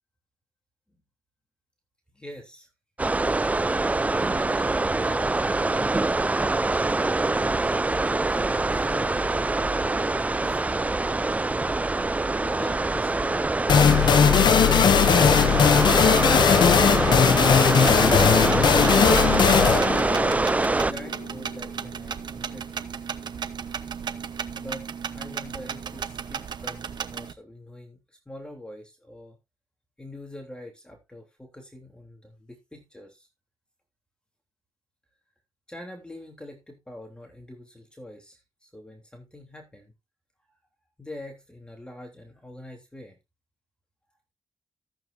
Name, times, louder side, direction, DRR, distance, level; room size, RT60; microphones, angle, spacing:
voice 1, 2.1-2.7 4.0-7.1 7.8-10.6 12.4-17.1 20.4-22.9 24.5-29.4 30.0-33.3 35.7-39.9 41.0-43.2, left 1 dB, 10° left, 3 dB, 3.4 m, -44 dB
sound 1, 3.0-20.9, right 2 dB, 15° right, 0.4 m, -24 dB
sound 2, 13.7-21.2, left 7 dB, 60° left, 0.7 m, -19 dB
sound 3, 17.9-27.3, right 7 dB, 60° right, 1.0 m, -35 dB
14.0 x 8.4 x 2.7 m, 0.23 s
cardioid pair, 85°, 8 cm